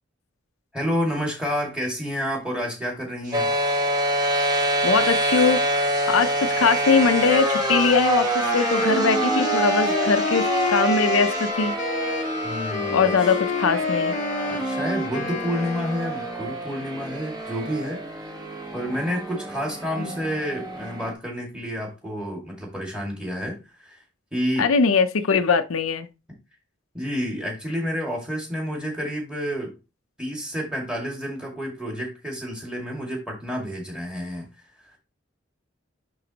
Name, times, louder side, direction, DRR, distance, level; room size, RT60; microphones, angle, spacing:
voice 1, 0.7-3.5 12.4-13.4 14.5-18.0 18.7-24.0 24.3-24.7 26.9-29.8 30.2-34.5, equal, 5° right, 2.1 m, -29 dB
sound 1, 3.2-11.5, right 4 dB, 35° right, 1.7 m, -41 dB
sound 2, 3.3-21.1, right 1 dB, 20° right, 1.3 m, -26 dB
voice 2, 4.8-11.7 12.9-14.1 20.0-20.1 24.6-26.1, left 5 dB, 85° left, 0.6 m, -21 dB
Wind instrument woodwind instrument, 8.4-16.5, left 4 dB, 35° left, 0.8 m, -29 dB
10.5 x 3.9 x 2.9 m
head